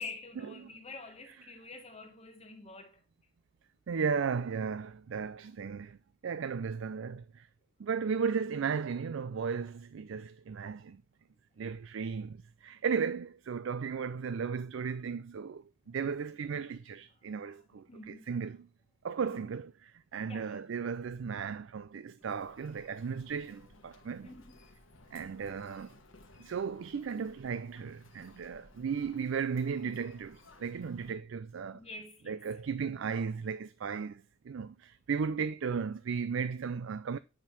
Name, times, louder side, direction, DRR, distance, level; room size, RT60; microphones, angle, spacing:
voice 1, 0.0-3.0 17.2-17.6 17.9-18.4 19.2-19.5 20.3-20.6 24.2-24.7 31.7-32.6, left 3 dB, 30° left, 1.5 m, -47 dB
voice 2, 3.9-6.0 6.2-7.5 7.8-11.0 11.6-18.6 19.0-19.7 20.1-24.3 25.1-26.0 26.4-31.8 32.3-37.2, right 6 dB, 65° right, 0.4 m, -35 dB
Human voice, 22.2-31.2, left 2 dB, 65° left, 1.5 m, -58 dB
9.8 x 3.7 x 5.8 m
head